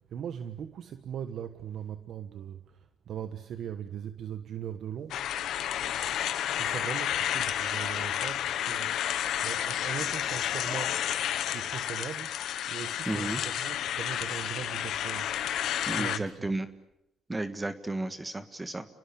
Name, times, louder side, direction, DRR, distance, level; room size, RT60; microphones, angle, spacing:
voice 1, 0.0-5.2 6.5-9.1 9.4-11.0 11.5-12.3 12.7-15.6 15.8-16.5, right 9 dB, 70° right, 9 dB, 1.4 m, -40 dB
sound 1, 5.1-16.2, left 11 dB, 80° left, 1.5 m, -31 dB
voice 2, 13.1-13.4 15.9-16.7 17.3-18.9, right 2 dB, 15° right, 10 dB, 1.7 m, -33 dB
29.5 x 20.5 x 8.7 m, 0.83 s
cardioid pair, 90°, 0 cm